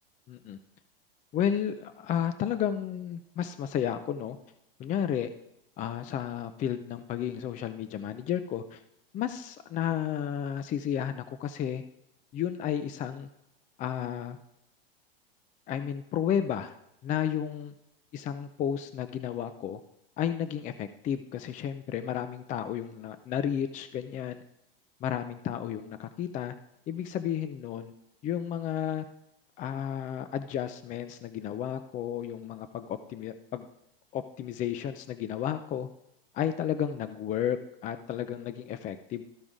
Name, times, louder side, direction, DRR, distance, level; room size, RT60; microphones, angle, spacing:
voice 1, 0.3-0.6 1.3-4.4 4.8-5.3 5.8-8.8 9.1-11.8 12.3-13.3 13.8-14.4 15.7-16.7 17.0-17.7 18.1-19.8 20.2-24.4 25.0-26.5 26.9-27.9 28.2-29.0 29.6-33.7 34.1-35.9 36.3-37.6 37.8-39.2, left 9 dB, 25° left, 10 dB, 0.4 m, -32 dB
13.5 x 4.8 x 3.7 m, 0.82 s
hypercardioid pair, 95°, 29 cm